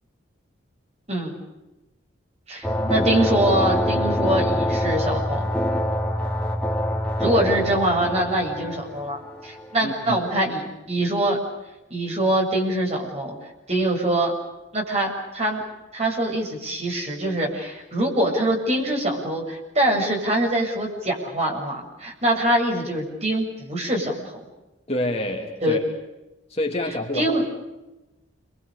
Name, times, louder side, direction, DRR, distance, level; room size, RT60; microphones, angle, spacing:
voice 1, 2.5-5.5 7.2-11.4 11.9-13.4 13.7-14.3 14.7-15.6 15.9-24.4 25.6-25.8 27.1-27.4, right 1 dB, 35° right, 0 dB, 7.2 m, -24 dB
sound 1, 2.6-9.8, left 1 dB, 5° left, 3.4 m, -25 dB
voice 2, 9.8-10.2 24.9-25.8 26.5-27.5, left 1 dB, 30° left, 1 dB, 3.1 m, -28 dB
29.0 x 24.0 x 6.9 m, 0.99 s
head